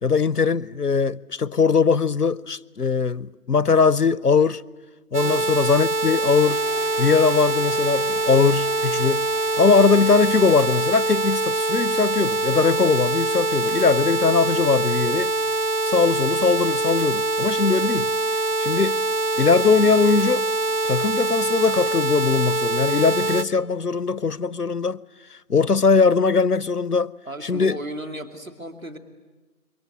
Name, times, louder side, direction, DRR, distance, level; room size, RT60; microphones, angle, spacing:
voice 1, 0.0-4.6 5.1-6.6 7.0-9.3 9.6-15.3 15.9-18.1 18.6-19.0 19.4-20.5 20.8-25.0 25.5-27.1 27.4-27.8, left 5 dB, 80° left, 0.8 m, -20 dB
sound 1, 5.1-23.4, right 2 dB, 75° right, 0.9 m, -24 dB
sound 2, 5.9-20.3, equal, 35° right, 3.6 m, -46 dB
voice 2, 27.3-29.0, right 1 dB, 60° right, 2.7 m, -35 dB
27.5 x 23.0 x 8.8 m
figure-of-eight pair, 180°, 46 cm